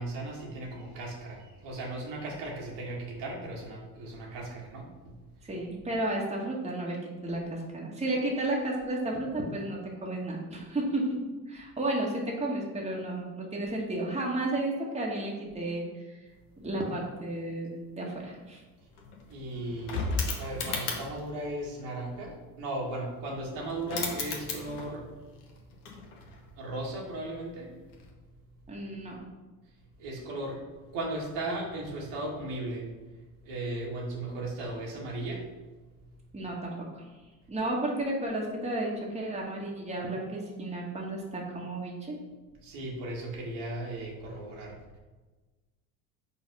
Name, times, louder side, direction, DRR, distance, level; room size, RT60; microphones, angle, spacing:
voice 1, 0.0-4.9 19.3-20.1 20.4-25.1 26.6-27.7 30.0-30.6 30.9-32.9 33.4-35.5 42.6-44.7, right 2 dB, 55° right, -3 dB, 2.0 m, -36 dB
voice 2, 5.4-7.0 7.2-11.2 11.5-16.1 16.6-18.6 28.7-29.2 36.3-37.1 37.5-42.2, right 1 dB, 15° right, -2 dB, 1.6 m, -32 dB
sound 1, 18.5-18.6 18.8-21.3 23.4-23.5 23.7-25.1 25.4-26.5 27.9-28.1, left 4 dB, 70° left, 1.4 m, -35 dB
5.4 x 4.0 x 5.4 m, 1.2 s
figure-of-eight pair, 65°, 47 cm